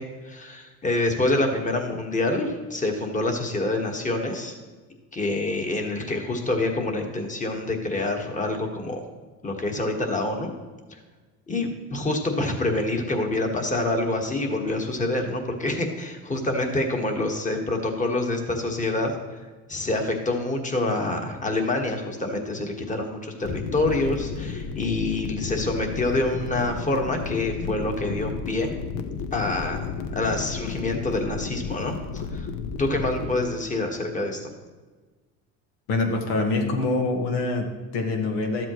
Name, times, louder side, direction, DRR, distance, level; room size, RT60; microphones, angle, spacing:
voice 1, 0.0-4.6 5.1-9.0 9.4-10.5 10.9-11.0 11.5-19.2 19.7-28.7 29.3-32.5 32.8-34.4, left 2 dB, 20° left, 3 dB, 1.5 m, -26 dB
sound 1, 23.4-33.4, left 6 dB, 65° left, 0.8 m, -33 dB
voice 2, 35.9-38.7, left 2 dB, 85° left, 4 dB, 1.6 m, -25 dB
13.0 x 7.6 x 3.1 m, 1.3 s
supercardioid pair, 105°, 35 cm